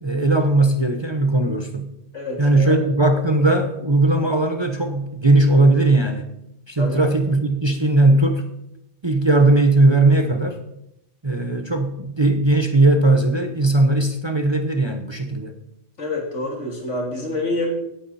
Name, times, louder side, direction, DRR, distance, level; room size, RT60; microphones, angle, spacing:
voice 1, 0.0-1.9 2.4-6.2 6.7-8.5 9.0-10.6 11.2-15.5, right 2 dB, 25° right, 5 dB, 1.0 m, -18 dB
voice 2, 2.1-2.8 6.8-7.0 16.0-17.7, left 2 dB, 75° left, 0 dB, 3.4 m, -27 dB
18.0 x 9.2 x 4.3 m, 0.81 s
omnidirectional pair, 1.3 m